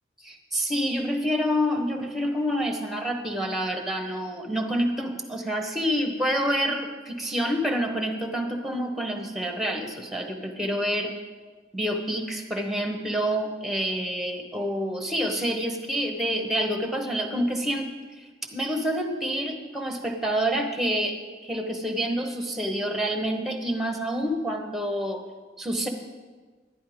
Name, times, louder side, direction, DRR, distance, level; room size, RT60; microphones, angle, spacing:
voice 1, 0.2-11.1 11.7-17.9 18.2-21.2 21.4-25.2 25.6-25.9, equal, ahead, 4 dB, 1.1 m, -28 dB
11.0 x 11.0 x 5.0 m, 1.4 s
head